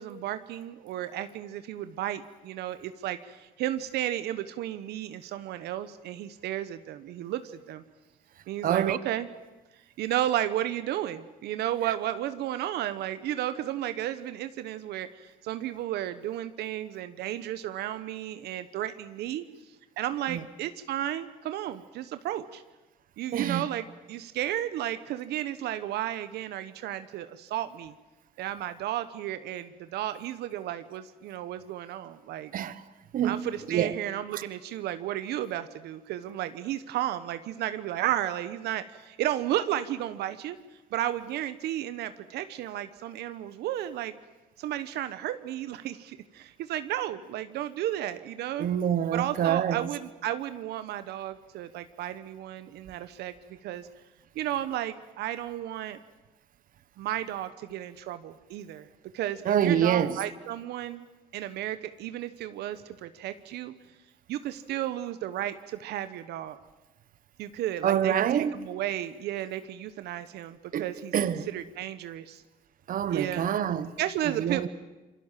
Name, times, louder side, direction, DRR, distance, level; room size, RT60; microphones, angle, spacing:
voice 1, 0.0-7.8 8.5-9.3 10.0-19.4 20.0-22.6 23.2-27.9 28.4-32.5 33.2-40.6 40.9-44.1 44.6-48.7 49.1-53.9 54.3-56.0 57.0-58.9 59.1-61.0 61.3-63.7 64.3-66.6 67.4-71.1 71.5-72.4 73.1-73.4 74.0-74.7, right 12 dB, 75° right, 1.1 m, -33 dB
voice 2, 8.6-9.0 20.3-20.4 23.3-23.6 32.5-32.8 33.1-33.9 34.3-34.4 48.6-49.9 59.4-60.2 67.8-68.5 70.7-70.8 71.1-71.5 72.9-73.9 74.3-74.7, right 9 dB, 55° right, 1.3 m, -26 dB
27.5 x 24.0 x 7.5 m
cardioid pair, 110°, 17 cm